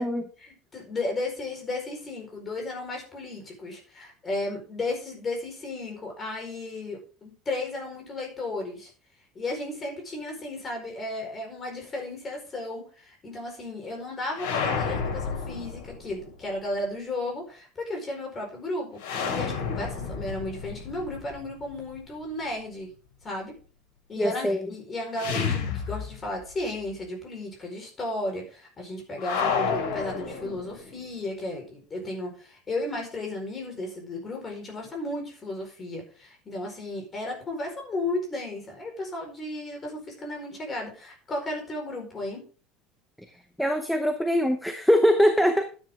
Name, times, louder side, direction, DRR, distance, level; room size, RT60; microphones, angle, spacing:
voice 1, 0.4-8.9 9.3-19.0 19.3-22.9 23.2-23.5 24.1-42.4, left 2 dB, 20° left, 1 dB, 4.7 m, -34 dB
sound 1, 14.3-16.3 19.0-22.0 25.1-26.6 26.8-26.9 29.2-31.0, left 5 dB, 75° left, 5.7 m, -31 dB
voice 2, 24.2-24.7 43.6-45.6, equal, ahead, 6 dB, 0.8 m, -22 dB
12.5 x 9.9 x 3.7 m, 0.37 s
cardioid pair, 180°, 0 cm